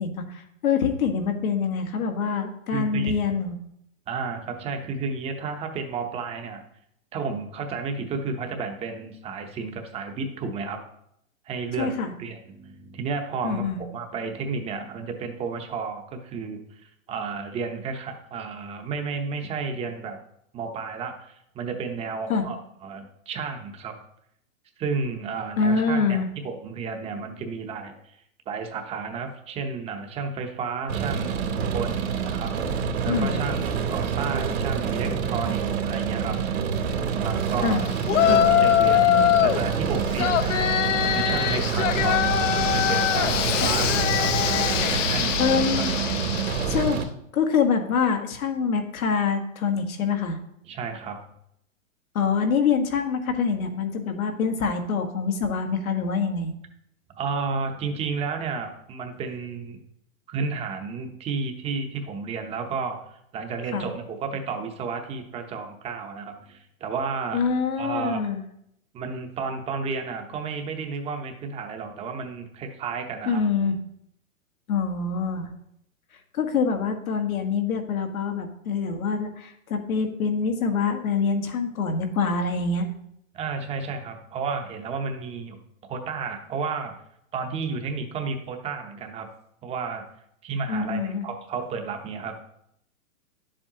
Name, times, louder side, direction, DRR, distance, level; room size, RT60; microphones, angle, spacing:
voice 1, 0.0-3.6 11.8-12.1 13.4-13.8 22.3-22.4 25.6-26.3 33.1-33.4 37.6-37.8 38.2-38.4 43.6-43.7 45.4-45.9 46.7-47.0 47.3-50.4 52.1-56.5 63.7-63.9 67.3-68.4 73.3-73.8 74.7-75.5 76.3-82.9 90.7-91.2, left 5 dB, 85° left, 5 dB, 1.6 m, -25 dB
voice 2, 2.7-3.1 4.1-6.6 7.1-10.8 11.5-11.9 12.2-20.2 20.5-22.6 22.8-23.9 24.8-28.2 28.5-36.4 37.2-37.9 38.2-40.6 41.0-44.6 44.9-45.3 45.8-45.9 50.7-51.2 57.1-59.8 60.3-67.4 67.8-68.2 68.9-73.4 83.3-85.6 85.9-86.9 87.3-89.3 89.6-90.0 90.4-92.4, right 5 dB, 15° right, 5 dB, 0.8 m, -32 dB
sound 1, 30.9-47.1, right 6 dB, 85° right, 2.4 m, -27 dB
Yell, 38.1-39.6 40.2-46.9, left 11 dB, 65° left, 0.7 m, -23 dB
10.5 x 7.5 x 2.9 m, 0.74 s
hypercardioid pair, 150°, 41 cm